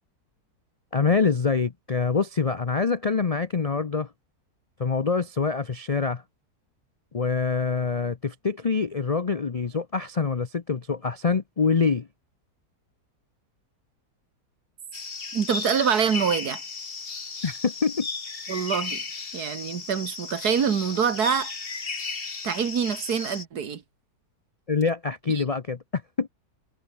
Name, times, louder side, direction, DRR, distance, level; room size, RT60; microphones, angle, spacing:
voice 1, 0.9-4.1 4.8-6.2 7.1-12.1 17.4-18.1 24.7-26.3, left 5 dB, 50° left, 0.4 m, -25 dB
sound 1, 14.9-23.5, left 4 dB, 35° left, 1.8 m, -35 dB
voice 2, 15.3-16.6 18.5-19.1 19.3-21.5 22.4-23.8 25.3-25.5, right 7 dB, 70° right, 2.1 m, -25 dB
omnidirectional pair, 1.7 m